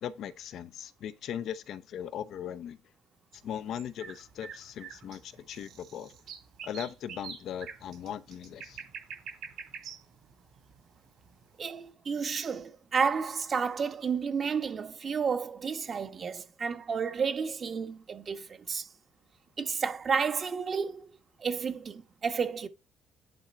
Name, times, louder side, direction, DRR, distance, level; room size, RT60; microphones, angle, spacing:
voice 1, 0.0-2.8 3.3-6.1 6.6-8.8, left 9 dB, 70° left, 0.7 m, -39 dB
sound 1, 3.3-11.5, right 6 dB, 70° right, 3.2 m, -46 dB
voice 2, 11.6-18.9 19.6-21.1 21.4-22.7, right 6 dB, 45° right, 1.2 m, -31 dB
10.0 x 3.8 x 4.4 m
supercardioid pair, 75°, 0 cm